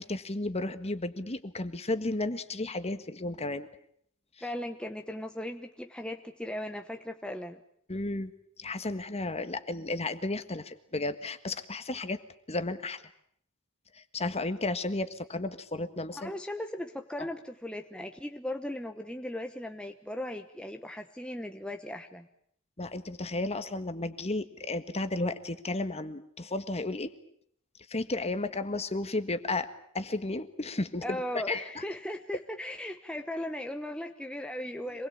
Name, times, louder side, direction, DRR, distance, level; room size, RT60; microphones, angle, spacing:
voice 1, 0.0-3.7 7.9-8.3 8.6-12.2 12.5-13.0 13.9-16.3 17.2-17.3 22.8-27.1 27.9-29.7 29.9-31.2 31.5-31.6, left 2 dB, 30° left, 10 dB, 1.6 m, -33 dB
voice 2, 4.4-7.6 16.1-22.3 31.0-35.1, left 1 dB, 5° left, 4 dB, 1.1 m, -37 dB
26.5 x 20.5 x 8.7 m, 0.66 s
head